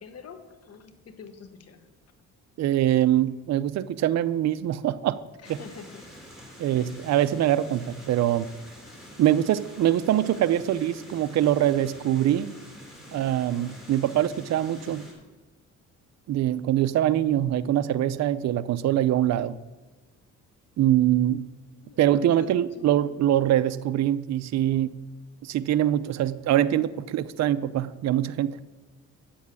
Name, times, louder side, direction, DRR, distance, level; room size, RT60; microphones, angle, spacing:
voice 1, 0.0-1.9 5.4-6.1 6.7-7.0 12.8-12.9 21.7-22.5 22.8-23.6, left 6 dB, 50° left, 7 dB, 1.3 m, -47 dB
voice 2, 2.6-5.2 5.5-5.6 6.6-8.5 9.2-12.5 13.1-15.1 16.3-19.6 20.8-21.4 22.0-24.9 25.4-28.6, right 12 dB, 60° right, 14 dB, 0.5 m, -23 dB
sound 1, 5.4-15.1, equal, ahead, 3.8 m, -47 dB
8.2 x 7.1 x 8.4 m, 1.2 s
cardioid pair, 100°, 31 cm